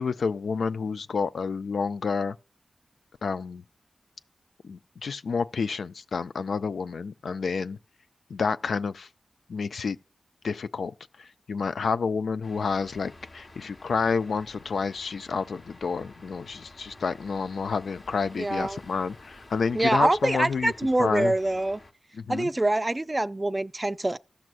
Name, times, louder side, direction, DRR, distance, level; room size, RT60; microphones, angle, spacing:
voice 1, 0.0-2.4 3.2-3.6 4.6-7.8 8.3-9.1 9.5-10.0 10.4-20.7 21.0-21.3 22.2-22.5, left 5 dB, 85° left, 0.3 m, -29 dB
sound 1, 12.4-21.9, left 2 dB, 55° left, 1.0 m, -50 dB
voice 2, 18.4-18.8 19.7-21.8 22.3-24.2, right 2 dB, 25° right, 0.4 m, -25 dB
14.5 x 6.0 x 2.5 m
cardioid pair, 50°, 0 cm